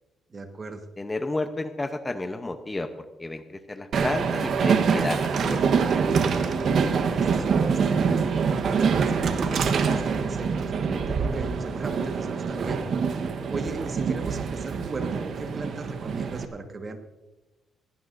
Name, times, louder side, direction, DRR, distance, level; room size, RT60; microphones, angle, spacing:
voice 1, 0.3-0.8 6.9-12.8 13.5-17.0, right 3 dB, 35° right, 6 dB, 1.6 m, -37 dB
voice 2, 1.0-5.9, left 2 dB, 20° left, 9 dB, 0.8 m, -32 dB
Train, 3.9-16.5, right 5 dB, 60° right, 1.2 m, -25 dB
18.5 x 16.5 x 2.7 m, 1.1 s
cardioid pair, 90°, 0 cm